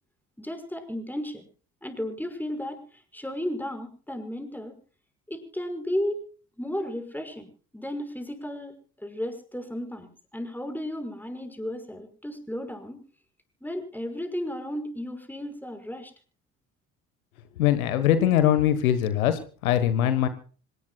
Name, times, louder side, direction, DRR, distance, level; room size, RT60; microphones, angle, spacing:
voice 1, 0.4-1.5 1.8-4.8 5.3-6.3 6.6-7.5 7.7-13.0 13.6-16.1, left 1 dB, 5° left, 7 dB, 5.8 m, -34 dB
voice 2, 17.6-20.3, left 11 dB, 80° left, 12 dB, 1.5 m, -22 dB
26.0 x 19.5 x 2.4 m, 0.39 s
figure-of-eight pair, 55°, 42 cm